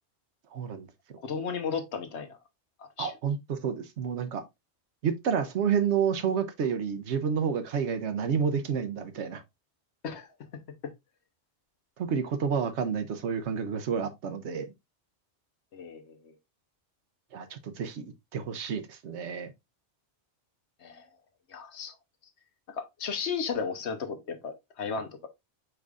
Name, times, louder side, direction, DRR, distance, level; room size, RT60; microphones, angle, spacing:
voice 1, 0.5-0.9 3.0-4.4 5.0-9.4 12.0-14.7 17.3-18.1 18.3-19.5, right 7 dB, 80° right, 1.0 m, -29 dB
voice 2, 1.2-2.4 2.8-3.1 10.0-10.3 10.8-10.9 15.7-16.3 20.8-21.1 21.5-21.9 22.7-25.3, left 6 dB, 75° left, 1.1 m, -34 dB
4.8 x 4.7 x 2.4 m
omnidirectional pair, 1.2 m